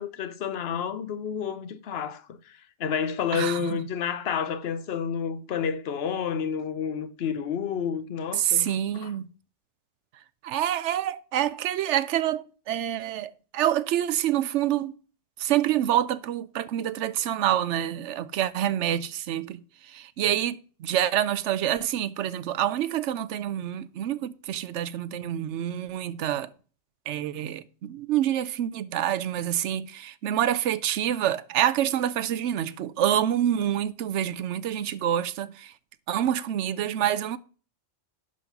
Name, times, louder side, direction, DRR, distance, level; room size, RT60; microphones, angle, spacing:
voice 1, 0.0-8.7 9.0-9.1, left 7 dB, 60° left, 0.9 m, -30 dB
voice 2, 3.3-3.8 8.4-9.2 10.4-14.9 15.4-26.5 27.1-35.7 36.1-37.4, right 11 dB, 75° right, 0.9 m, -27 dB
11.0 x 3.9 x 5.8 m
omnidirectional pair, 1.2 m